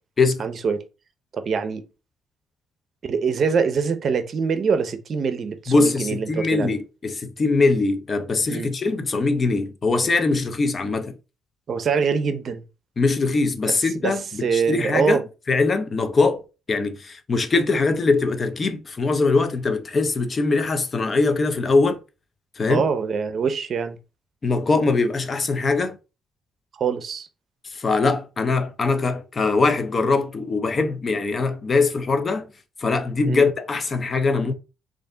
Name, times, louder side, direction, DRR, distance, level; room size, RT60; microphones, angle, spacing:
voice 1, 0.4-0.8 1.3-1.8 3.0-6.8 8.5-8.7 11.7-12.6 13.6-14.1 14.4-15.2 22.7-24.0 26.8-27.3 33.2-33.4, right 5 dB, 55° right, 0.6 m, -24 dB
voice 2, 5.7-11.1 13.0-15.2 15.5-16.4 16.7-22.0 22.6-22.8 24.4-26.0 27.6-32.5 32.8-34.5, left 3 dB, 35° left, 0.5 m, -22 dB
3.3 x 2.5 x 3.7 m
cardioid pair, 90°, 0 cm